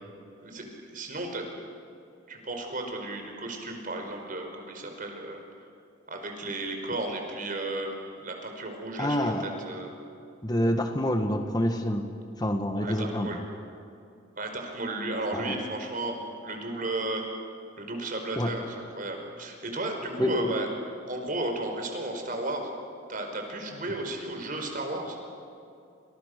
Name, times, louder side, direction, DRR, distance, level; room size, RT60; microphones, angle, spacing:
voice 1, 0.4-1.6 2.3-5.4 6.1-9.9 12.7-13.4 14.4-17.3 17.8-20.7 21.1-22.7 23.1-25.2, right 2 dB, 45° right, 4 dB, 5.0 m, -34 dB
voice 2, 9.0-9.6 10.4-12.1 12.4-13.4 15.3-15.5 18.4-18.5 20.2-20.5, equal, 20° left, 5 dB, 1.5 m, -27 dB
29.0 x 28.0 x 6.7 m, 2.6 s
head